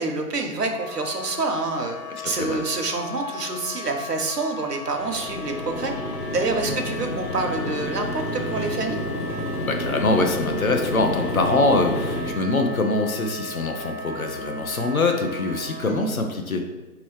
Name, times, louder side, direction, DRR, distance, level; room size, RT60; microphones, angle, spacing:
voice 1, 0.0-2.0 2.2-5.9 6.3-9.0 15.9-16.1, right 3 dB, 80° right, 4 dB, 0.9 m, -27 dB
Wind instrument woodwind instrument, 0.7-16.0, left 3 dB, 35° left, 1.1 m, -37 dB
voice 2, 2.2-2.6 6.7-6.8 9.6-16.7, left 2 dB, 65° left, 4 dB, 0.7 m, -23 dB
sound 1, 4.9-12.3, equal, 85° left, 1.3 m, -30 dB
4.7 x 3.0 x 3.1 m, 1.2 s
figure-of-eight pair, 170°, 46 cm